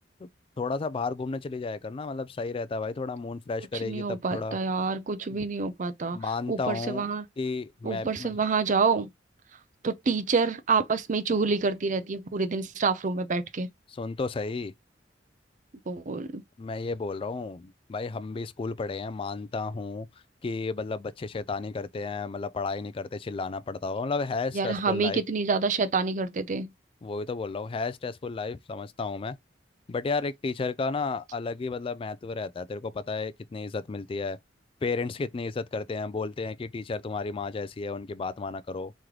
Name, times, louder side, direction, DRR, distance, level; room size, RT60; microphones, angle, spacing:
voice 1, 0.6-4.6 5.3-5.4 6.1-7.0 7.4-8.3 13.9-14.7 16.6-20.1 20.4-25.2 27.0-29.4 29.9-34.4 34.8-38.9, left 4 dB, 30° left, 0.3 m, -32 dB
voice 2, 3.7-6.2 6.5-7.2 7.8-9.1 9.8-13.7 15.9-16.4 24.5-26.7, right 4 dB, 45° right, 0.5 m, -27 dB
3.2 x 3.0 x 3.7 m
head